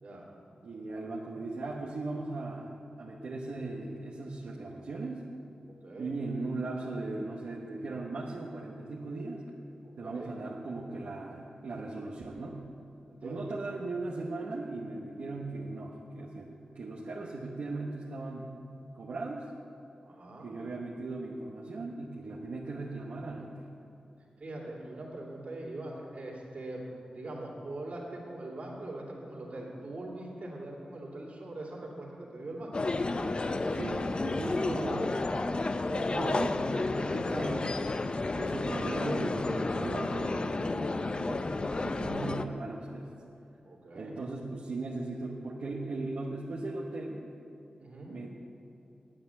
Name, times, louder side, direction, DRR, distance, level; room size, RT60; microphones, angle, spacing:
voice 1, 0.6-5.3 6.0-9.5 10.0-12.6 13.2-18.5 18.9-19.5 20.4-23.7 33.7-35.2 35.8-37.8 38.3-43.1 43.9-47.3 48.1-48.3, right 2 dB, 80° right, -4 dB, 1.1 m, -38 dB
voice 2, 5.7-6.1 10.0-10.3 13.1-13.5 20.0-20.5 24.4-26.9 27.1-32.8 35.4-35.7 37.0-37.7 43.6-44.1 47.8-48.1, right 2 dB, 60° right, -3 dB, 2.7 m, -42 dB
sound 1, 32.7-42.5, left 2 dB, 40° left, 0.5 m, -31 dB
10.0 x 8.7 x 7.0 m, 2.8 s
cardioid pair, 60°, 3 cm